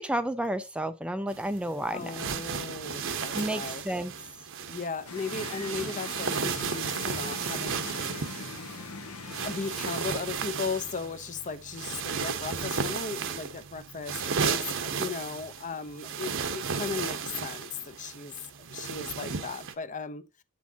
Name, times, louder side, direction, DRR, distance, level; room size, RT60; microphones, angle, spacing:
voice 1, 0.0-2.2 3.3-4.1, right 1 dB, 5° right, 0.4 m, -31 dB
sound 1, 1.3-19.7, right 6 dB, 60° right, 0.9 m, -34 dB
voice 2, 1.9-3.8 4.7-8.3 9.4-18.3 18.7-20.2, left 5 dB, 35° left, 0.6 m, -37 dB
sound 2, 5.1-10.1, left 4 dB, 80° left, 1.1 m, -42 dB
8.1 x 6.2 x 2.8 m
head